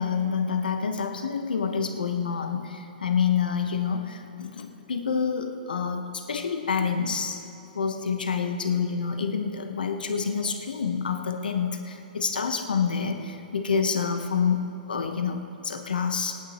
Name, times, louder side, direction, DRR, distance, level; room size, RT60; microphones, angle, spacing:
voice 1, 0.0-7.4 7.7-16.4, left 6 dB, 75° left, 6 dB, 1.1 m, -27 dB
25.5 x 9.1 x 3.1 m, 2.8 s
figure-of-eight pair, 115°, 5 cm